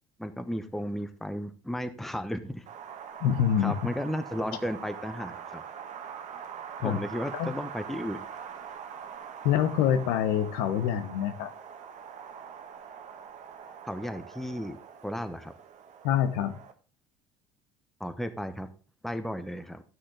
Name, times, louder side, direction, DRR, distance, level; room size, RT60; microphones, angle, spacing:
voice 1, 0.2-2.6 3.6-5.6 6.8-8.2 13.8-14.8 15.0-15.5 18.0-18.7 19.0-19.8, equal, ahead, 10 dB, 1.0 m, -34 dB
Wind, 2.7-16.7, right 7 dB, 45° right, 1.2 m, -43 dB
voice 2, 3.2-3.8 6.8-7.0 7.3-7.5 9.4-11.5 16.0-16.5, left 9 dB, 60° left, 8 dB, 1.1 m, -26 dB
12.5 x 6.3 x 3.8 m, 0.37 s
figure-of-eight pair, 60°, 18 cm